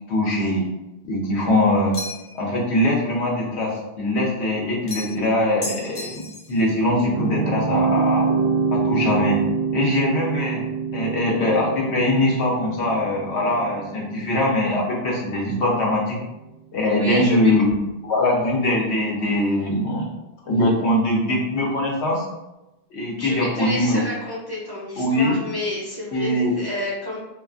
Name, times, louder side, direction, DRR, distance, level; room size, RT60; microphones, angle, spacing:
voice 1, 0.1-0.6 1.0-1.9 2.3-8.3 8.7-9.4 9.7-10.6 10.9-16.2 16.7-17.7 18.0-20.1 20.5-22.2 22.9-24.0 25.0-25.4 26.1-26.5, left 1 dB, 80° left, -2 dB, 1.0 m, -22 dB
sound 1, 1.9-2.4 4.9-5.3 5.6-6.6, left 2 dB, 45° left, 0.6 m, -33 dB
sound 2, 6.5-15.7, right 5 dB, 80° right, 0.8 m, -26 dB
voice 2, 16.8-17.5 23.2-27.2, left 1 dB, 35° right, -7 dB, 0.4 m, -30 dB
2.5 x 2.4 x 2.4 m, 0.98 s
omnidirectional pair, 1.1 m